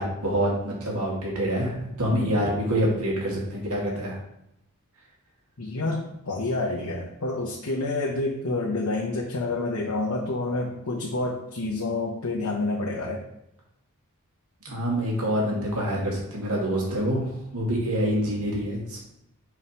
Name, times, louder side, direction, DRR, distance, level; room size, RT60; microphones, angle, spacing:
voice 1, 0.0-4.2 14.6-19.0, equal, 75° right, -3 dB, 2.4 m, -26 dB
voice 2, 2.1-2.4 5.6-13.2, left 2 dB, 70° left, -2 dB, 1.1 m, -28 dB
5.9 x 4.9 x 4.4 m, 0.79 s
head